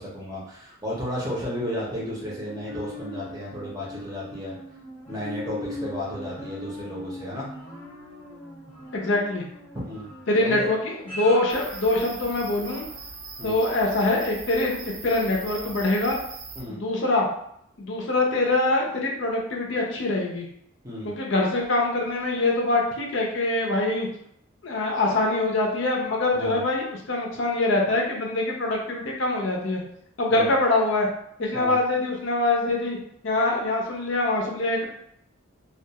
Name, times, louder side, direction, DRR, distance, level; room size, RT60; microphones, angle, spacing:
voice 1, 0.0-4.6 5.1-7.5 9.8-10.7 13.4-13.6 16.6-16.8 20.8-21.2 26.3-26.6 30.3-30.5 31.5-31.8, left 1 dB, 15° right, -5 dB, 0.6 m, -33 dB
sound 1, 1.6-13.1 13.5-13.6, left 1 dB, 10° left, 0.9 m, -40 dB
voice 2, 8.9-9.4 10.3-12.8 13.4-16.2 16.7-17.3 17.8-20.5 21.0-24.1 24.6-29.8 30.2-31.1 31.4-33.0 33.2-34.8, left 2 dB, 60° left, -1 dB, 0.5 m, -24 dB
sound 2, 11.5-16.6, right 4 dB, 65° right, 0.5 m, -40 dB
2.3 x 2.3 x 2.8 m, 0.71 s
head